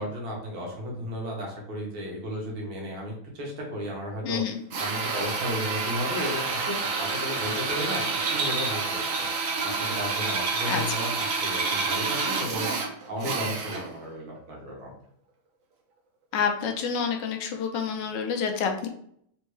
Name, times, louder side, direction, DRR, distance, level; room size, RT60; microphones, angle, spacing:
voice 1, 0.0-4.4 4.8-9.3 9.6-12.7 13.1-14.9, equal, 90° right, -2 dB, 2.3 m, -34 dB
voice 2, 4.2-4.6 10.6-11.0 16.3-18.9, left 6 dB, 70° left, 4 dB, 1.2 m, -28 dB
Drill, 4.7-14.0, right 4 dB, 60° right, 0.9 m, -28 dB
4.4 x 3.5 x 3.1 m, 0.67 s
omnidirectional pair, 2.2 m